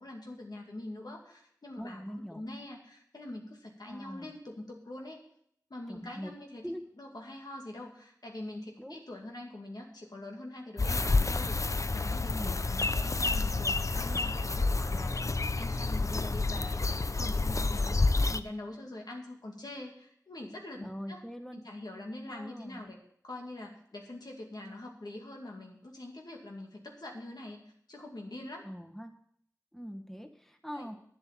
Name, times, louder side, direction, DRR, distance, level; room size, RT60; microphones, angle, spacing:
voice 1, 0.0-2.0 2.3-5.2 5.7-6.7 7.0-18.0 18.3-21.2 21.5-23.0 23.2-27.6 27.9-28.7 30.7-30.9, left 1 dB, 90° left, 0 dB, 2.3 m, -44 dB
voice 2, 1.8-2.4 3.8-4.3 5.9-6.3 6.6-6.9 8.8-9.0 12.3-12.6 20.8-21.6 22.3-22.9 28.6-29.1 29.7-30.9, equal, 5° left, 5 dB, 1.2 m, -42 dB
sound 1, 10.8-18.4, left 3 dB, 50° left, 0.5 m, -29 dB
9.9 x 7.6 x 7.5 m, 0.66 s
wide cardioid pair, 50°, 7 cm